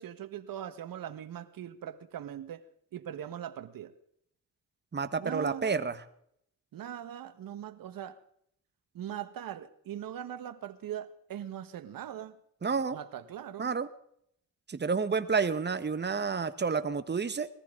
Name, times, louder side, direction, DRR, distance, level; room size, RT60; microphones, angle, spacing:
voice 1, 0.0-2.6 2.9-3.9 5.2-5.8 6.7-8.2 8.9-12.4 12.7-13.8, right 10 dB, 70° right, 11 dB, 1.6 m, -41 dB
voice 2, 4.9-6.0 12.6-13.0 13.6-13.9 14.7-17.5, right 5 dB, 30° right, 11 dB, 1.5 m, -30 dB
21.0 x 14.5 x 3.9 m, 0.69 s
cardioid pair, 80°, 35 cm